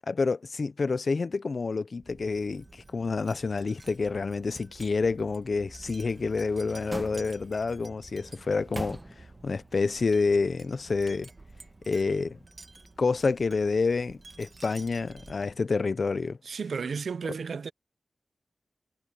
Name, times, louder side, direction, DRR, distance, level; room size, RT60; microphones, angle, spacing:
voice 1, 0.1-11.3 11.8-12.4 13.0-16.4, left 4 dB, 55° left, 0.7 m, -28 dB
Wind chime, 2.0-15.7, right 3 dB, 35° right, 1.4 m, -50 dB
sound 1, 6.0-7.7 8.3-9.6 9.9-10.0, right 1 dB, 15° right, 1.1 m, -42 dB
voice 2, 16.4-17.7, right 5 dB, 80° right, 0.6 m, -33 dB
wide cardioid pair, 120°, 0 cm